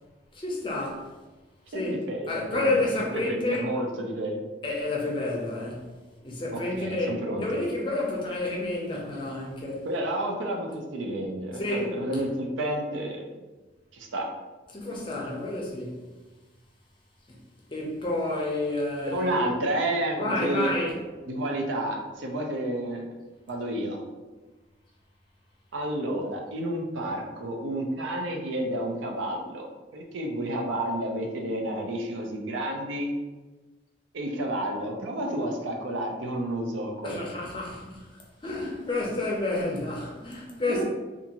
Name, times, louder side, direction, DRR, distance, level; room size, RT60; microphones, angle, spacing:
voice 1, 0.3-1.1 1.7-2.0 2.3-3.7 4.6-5.9 6.2-9.9 11.6-12.2 14.7-16.0 17.3-17.4 17.7-19.4 20.2-21.0 37.0-38.1 38.4-40.8, left 2 dB, 25° left, -2 dB, 0.5 m, -30 dB
voice 2, 1.7-2.8 3.1-4.4 6.5-7.5 9.8-13.2 13.9-14.2 19.0-20.7 21.2-23.1 23.5-24.0 25.7-29.7 29.9-33.1 34.1-37.2 40.7-40.8, right 1 dB, 90° right, 1 dB, 0.5 m, -30 dB
2.5 x 2.4 x 2.8 m, 1.2 s
head